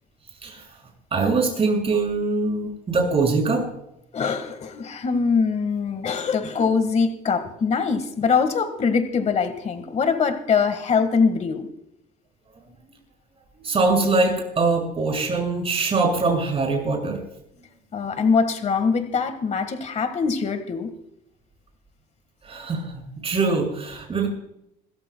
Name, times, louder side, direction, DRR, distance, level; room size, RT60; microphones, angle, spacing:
voice 1, 1.1-3.6 12.6-12.7 13.6-17.2 22.4-24.3, right 3 dB, 35° right, 1 dB, 6.5 m, -23 dB
voice 2, 4.1-11.7 17.9-20.9, left 5 dB, 40° left, 8 dB, 1.7 m, -23 dB
27.0 x 14.0 x 2.3 m, 0.80 s
cardioid pair, 110°, 17 cm